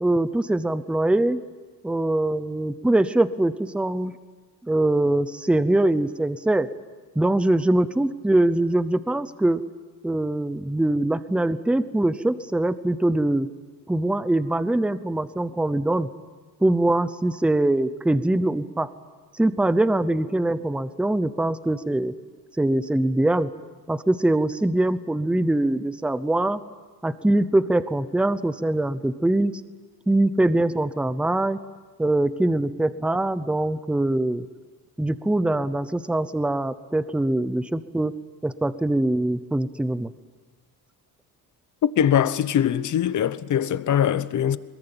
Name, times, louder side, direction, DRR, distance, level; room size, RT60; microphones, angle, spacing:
voice 1, 0.0-1.4 1.8-4.1 4.6-6.7 7.2-9.6 10.0-13.5 13.9-16.1 16.6-18.9 19.3-22.1 22.6-23.5 23.9-26.6 27.0-29.5 30.1-31.6 32.0-34.4 35.0-38.1 38.4-40.1, right 1 dB, 5° right, 0.7 m, -23 dB
voice 2, 42.0-44.6, left 9 dB, 50° left, 1.0 m, -22 dB
22.5 x 21.0 x 9.0 m
cardioid pair, 140°, 37 cm